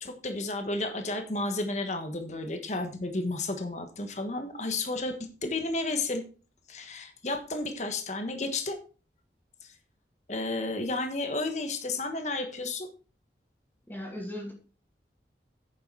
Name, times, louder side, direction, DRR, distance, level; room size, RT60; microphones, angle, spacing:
voice 1, 0.0-5.2 5.4-6.2 6.7-8.8 9.6-9.7 10.3-12.9, left 2 dB, 40° left, 6 dB, 1.4 m, -32 dB
voice 2, 13.9-14.5, left 1 dB, 10° left, -1 dB, 2.4 m, -37 dB
9.5 x 6.8 x 4.8 m, 0.36 s
head